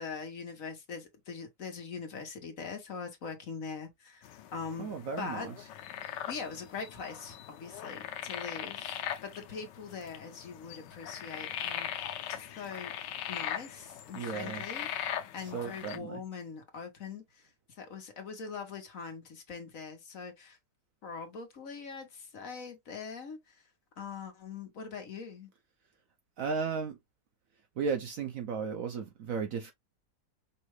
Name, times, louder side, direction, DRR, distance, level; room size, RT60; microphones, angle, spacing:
voice 1, 0.0-4.9 5.2-5.8 6.3-12.9 13.3-14.9 15.3-17.5 17.8-20.6 21.0-23.6 24.0-25.5, left 5 dB, 55° left, 1.4 m, -42 dB
sound 1, 4.2-16.0, left 10 dB, 85° left, 1.3 m, -40 dB
voice 2, 4.8-5.5 14.1-14.6 15.4-16.2 26.4-27.0 27.8-29.7, right 5 dB, 65° right, 0.9 m, -35 dB
5.5 x 2.4 x 3.1 m
omnidirectional pair, 1.9 m